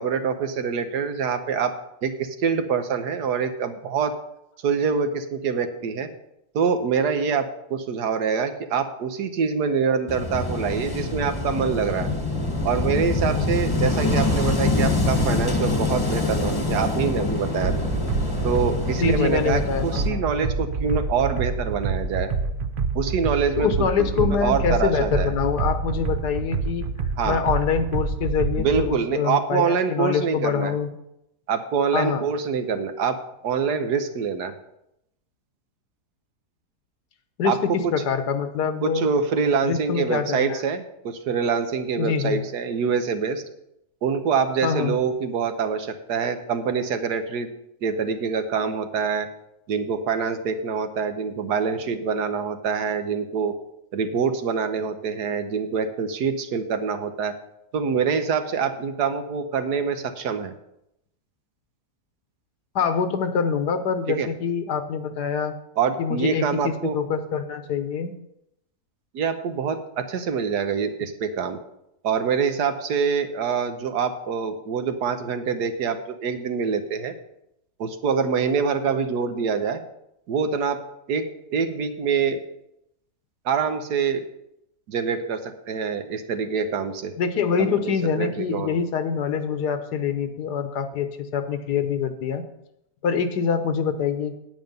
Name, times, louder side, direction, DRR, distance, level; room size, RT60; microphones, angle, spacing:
voice 1, 0.0-1.7 2.0-4.2 4.6-6.1 6.5-12.1 12.6-17.7 18.4-22.3 22.9-23.9 24.2-25.3 27.2-27.4 28.6-30.7 31.5-34.6 37.4-37.6 38.8-43.4 44.0-47.5 47.8-49.3 49.7-53.5 53.9-57.4 57.7-60.5 64.1-64.3 65.8-67.0 69.1-71.6 72.0-77.1 77.8-79.8 80.3-80.8 81.1-82.4 83.4-84.3 84.9-87.1 87.6-88.8, right 6 dB, 80° right, 8 dB, 1.5 m, -25 dB
Wind / Waves surf, 10.1-20.1, left 2 dB, 15° left, 1.2 m, -25 dB
sound 1, 17.6-28.9, right 4 dB, 50° right, 0.6 m, -27 dB
voice 2, 19.0-20.2 23.6-26.8 27.2-30.9 31.9-32.2 37.4-39.1 39.6-40.6 42.0-42.4 44.6-45.0 62.7-65.5 66.0-68.2 87.2-92.4 93.0-94.3, left 6 dB, 80° left, 9 dB, 1.6 m, -25 dB
9.3 x 9.2 x 5.4 m, 0.81 s
omnidirectional pair, 1.7 m